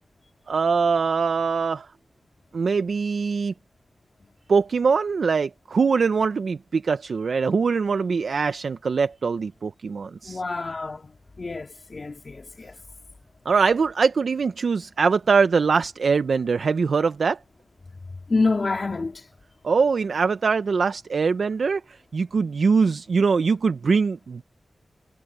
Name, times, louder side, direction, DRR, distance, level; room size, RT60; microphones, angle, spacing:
voice 1, 0.5-1.9 2.5-3.5 4.5-10.4 13.5-17.4 19.6-24.4, right 5 dB, 70° right, 0.6 m, -22 dB
voice 2, 10.3-11.0 11.4-12.7 18.3-19.1, left 3 dB, 45° left, 2.6 m, -27 dB
wide cardioid pair, 95°, 0 cm